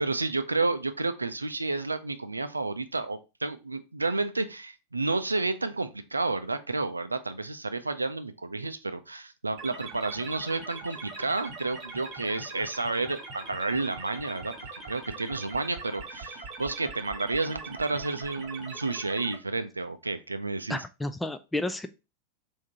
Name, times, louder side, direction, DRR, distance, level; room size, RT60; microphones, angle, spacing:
voice 1, 0.0-14.5 14.9-20.8, right 3 dB, 80° right, 10 dB, 0.4 m, -31 dB
sound 1, 9.6-19.4, right 3 dB, 35° right, 1.5 m, -41 dB
voice 2, 20.7-21.9, left 1 dB, 5° left, 9 dB, 0.3 m, -31 dB
3.6 x 2.7 x 4.3 m, 0.28 s
figure-of-eight pair, 90°, 0 cm